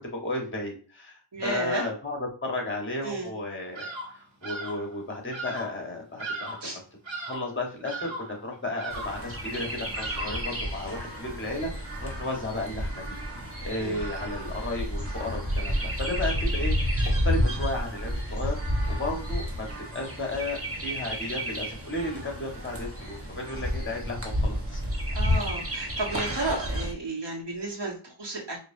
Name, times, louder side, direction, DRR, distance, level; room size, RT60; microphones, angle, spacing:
voice 1, 0.2-3.9 4.4-6.5 7.2-13.2 13.6-18.5 18.9-19.7 19.9-24.8, left 2 dB, 25° left, 1 dB, 1.5 m, -33 dB
voice 2, 1.3-1.9 3.0-3.4 6.6-6.8 13.8-14.0 25.1-28.6, right 2 dB, 60° right, -2 dB, 1.5 m, -33 dB
Bird vocalization bird call bird song, 3.7-4.2 4.4-4.9 5.3-5.7 6.2-6.7 7.0-7.5 7.8-8.4 8.8-9.3 9.9-10.5, right 2 dB, 85° right, 1.6 m, -37 dB
Chirp tweet, 8.9-26.9, equal, 30° right, 1.3 m, -30 dB
4.5 x 2.7 x 2.7 m, 0.39 s
wide cardioid pair, 65°, 46 cm